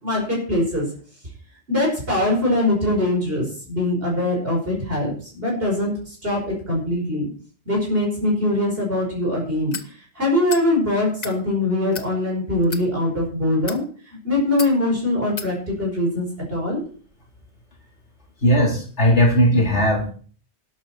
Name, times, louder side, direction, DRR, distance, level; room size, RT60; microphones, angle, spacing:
voice 1, 0.0-0.9 1.7-7.3 7.7-16.8, left 1 dB, 55° right, -2 dB, 5.6 m, -22 dB
sound 1, 9.7-9.9 10.5-10.7 11.1-11.4 11.9-12.1 12.6-12.8 13.5-13.8 14.6-14.7 15.4-15.5, left 5 dB, 35° left, 1.2 m, -32 dB
voice 2, 18.4-20.1, equal, 70° left, -1 dB, 4.5 m, -17 dB
12.5 x 12.0 x 4.5 m, 0.42 s
omnidirectional pair, 1.2 m